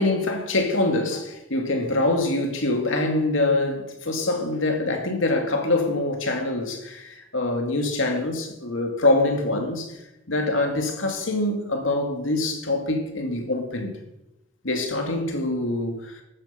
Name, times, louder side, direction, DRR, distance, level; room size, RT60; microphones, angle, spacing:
voice 1, 0.0-10.0 10.3-14.0 14.6-16.2, left 2 dB, 90° left, 2.4 m, -24 dB
13.5 x 9.0 x 5.8 m
head